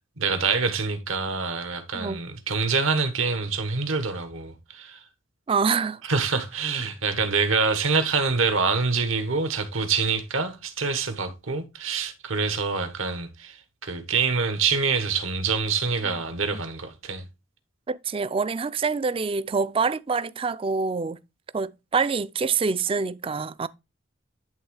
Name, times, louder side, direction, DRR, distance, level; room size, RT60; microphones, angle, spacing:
voice 1, 0.2-5.0 6.0-17.3, right 4 dB, 80° right, 1.4 m, -26 dB
voice 2, 5.5-6.0 17.9-21.2 21.5-23.7, right 5 dB, 25° right, 0.3 m, -26 dB
10.5 x 3.6 x 4.8 m
head